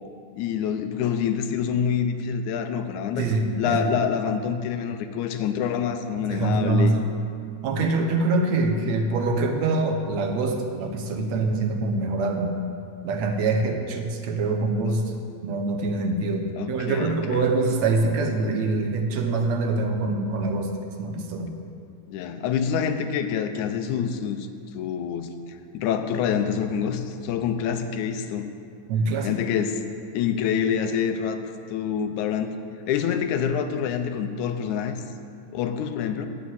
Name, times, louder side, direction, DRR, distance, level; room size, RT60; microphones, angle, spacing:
voice 1, 0.4-3.3 3.6-7.0 16.6-17.5 22.1-24.5 24.7-28.5 29.2-29.8 30.1-31.4 31.7-32.5 32.9-35.0 35.5-36.3, left 7 dB, 85° left, 8 dB, 2.1 m, -26 dB
voice 2, 3.2-3.8 6.3-7.0 7.6-12.5 13.0-15.0 15.4-20.7 21.0-21.5 28.9-29.3, right 3 dB, 75° right, 3 dB, 2.1 m, -24 dB
9.3 x 6.3 x 8.5 m, 2.3 s
omnidirectional pair, 3.3 m